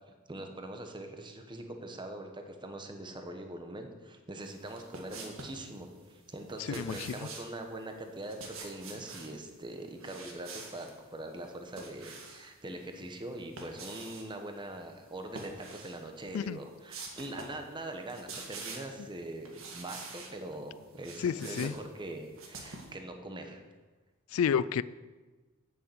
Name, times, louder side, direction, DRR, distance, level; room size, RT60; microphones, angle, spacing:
voice 1, 0.3-23.6, right 1 dB, 20° right, 5 dB, 1.1 m, -42 dB
sound 1, 4.6-5.6 6.5-7.5 8.2-9.3 10.0-10.9 11.4-12.5 13.3-14.3 15.3-16.0 16.4-16.5 16.9-17.6 17.9-19.0 19.4-20.3 20.8-22.9, right 3 dB, 70° right, 1.9 m, -46 dB
voice 2, 6.7-7.2 16.3-16.6 21.2-21.7 24.3-24.8, left 7 dB, 80° left, 18 dB, 0.3 m, -30 dB
8.5 x 7.3 x 8.0 m, 1.3 s
head